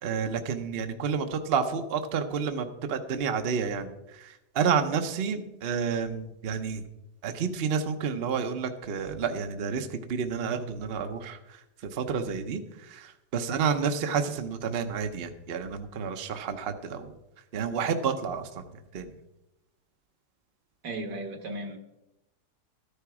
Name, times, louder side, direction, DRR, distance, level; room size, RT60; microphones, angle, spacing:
voice 1, 0.0-6.8 7.2-17.1 17.5-19.1, right 6 dB, 45° right, 7 dB, 0.8 m, -30 dB
voice 2, 20.8-21.8, right 2 dB, 75° right, 4 dB, 2.0 m, -35 dB
13.5 x 10.0 x 4.8 m, 0.91 s
omnidirectional pair, 1.8 m